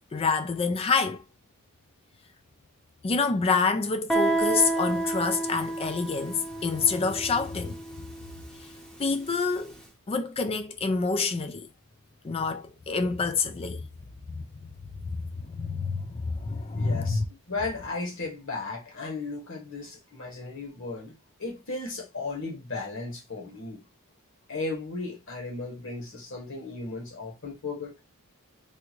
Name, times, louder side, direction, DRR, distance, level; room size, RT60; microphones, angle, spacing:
voice 1, 0.1-1.2 3.0-7.8 9.0-9.7 10.1-11.7 12.2-13.9 14.4-14.7 15.0-17.2, left 4 dB, 25° left, 0.4 m, -27 dB
Guitar, 4.1-9.5, right 2 dB, 5° left, 0.8 m, -30 dB
voice 2, 16.7-17.2 17.5-21.1 21.4-23.8 24.5-27.9, left 3 dB, 60° left, 1.5 m, -35 dB
3.5 x 2.5 x 3.0 m
head